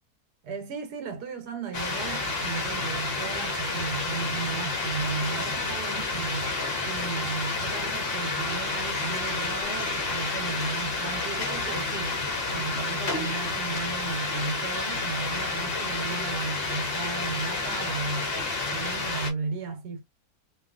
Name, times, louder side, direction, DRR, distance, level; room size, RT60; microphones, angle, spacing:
voice 1, 0.4-12.2 12.5-18.3 18.7-20.0, right 4 dB, 75° right, 1.2 m, -35 dB
sound 1, 1.7-19.3, left 3 dB, 55° left, 0.7 m, -30 dB
2.7 x 2.3 x 2.3 m
omnidirectional pair, 1.8 m